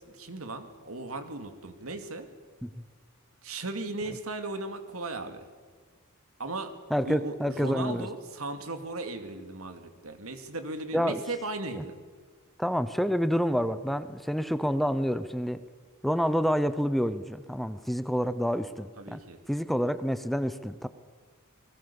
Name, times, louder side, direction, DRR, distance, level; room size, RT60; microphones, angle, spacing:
voice 1, 0.1-2.3 3.4-5.4 6.4-6.7 7.0-12.0 19.0-19.4, right 2 dB, 75° right, 8 dB, 2.4 m, -37 dB
voice 2, 6.9-8.1 10.9-11.1 11.8-11.9 12.6-15.6 16.0-19.2 19.5-20.9, equal, ahead, 12 dB, 0.7 m, -28 dB
29.0 x 21.0 x 7.1 m, 1.5 s
head